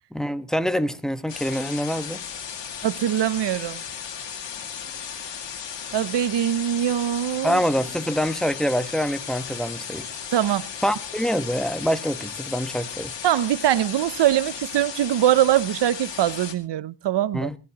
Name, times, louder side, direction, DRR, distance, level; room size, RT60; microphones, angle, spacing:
voice 1, 0.1-2.2 7.4-10.1 10.8-13.1 17.3-17.6, equal, ahead, 1.0 m, -25 dB
sound 1, 1.3-16.5, left 7 dB, 85° left, 2.2 m, -35 dB
voice 2, 2.8-3.8 5.9-7.6 10.3-10.7 13.2-17.5, right 12 dB, 75° right, 0.7 m, -22 dB
21.5 x 14.0 x 2.9 m
cardioid pair, 75°, 43 cm